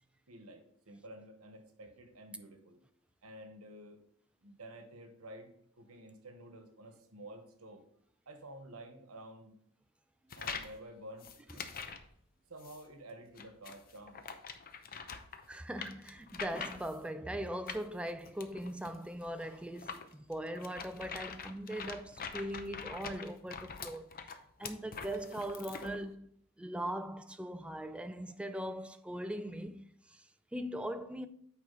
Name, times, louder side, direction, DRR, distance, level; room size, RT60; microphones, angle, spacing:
voice 1, 0.3-2.8 3.2-4.0 4.4-7.8 8.3-9.6 10.3-11.6 12.5-14.2, right 1 dB, 90° right, 1.2 m, -51 dB
sound 1, 10.3-10.8 11.2-12.1 12.6-12.8 13.4-17.1 17.7-26.0, left 6 dB, 45° left, 0.6 m, -44 dB
voice 2, 15.5-24.3 24.6-26.3 26.6-31.3, right 1 dB, 5° right, 0.4 m, -40 dB
8.5 x 4.9 x 3.8 m
head